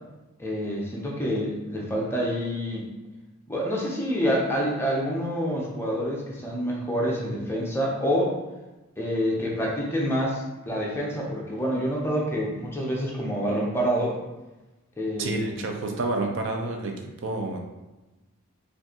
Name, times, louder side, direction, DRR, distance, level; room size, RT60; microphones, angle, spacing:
voice 1, 0.4-2.9 3.5-8.3 9.0-14.1 15.0-15.6, equal, 10° left, -3 dB, 0.6 m, -27 dB
voice 2, 15.2-17.6, right 2 dB, 55° right, 2 dB, 0.4 m, -29 dB
4.5 x 2.5 x 2.8 m, 1.1 s
head